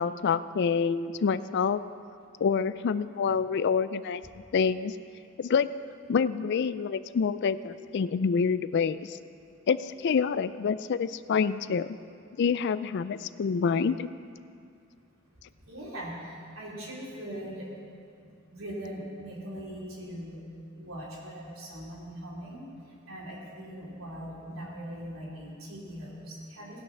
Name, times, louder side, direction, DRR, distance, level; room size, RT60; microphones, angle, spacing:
voice 1, 0.0-1.8 2.4-4.2 4.5-5.0 5.4-5.7 6.1-9.2 9.7-12.0 12.4-14.1, left 6 dB, 55° left, 15 dB, 0.4 m, -27 dB
voice 2, 15.6-17.7 18.1-20.4 20.7-26.8, equal, 90° right, -5 dB, 3.3 m, -41 dB
18.0 x 6.4 x 5.8 m, 2.4 s
head